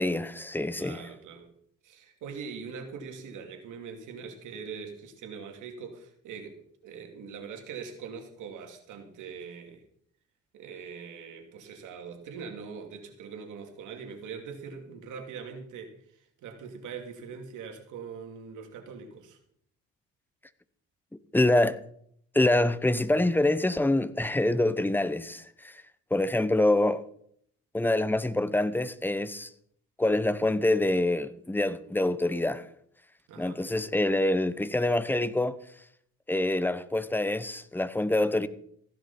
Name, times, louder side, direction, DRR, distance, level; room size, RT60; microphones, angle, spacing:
voice 1, 0.0-1.0 21.3-21.8 22.3-25.8 26.1-27.0 27.7-29.5 30.0-32.6 33.4-35.6 36.3-38.5, left 1 dB, 5° left, 0.9 m, -26 dB
voice 2, 0.8-1.5 1.8-9.8 10.5-19.4 33.3-33.6, right 6 dB, 85° right, 2.6 m, -42 dB
15.5 x 11.0 x 4.3 m
cardioid pair, 90°, 30 cm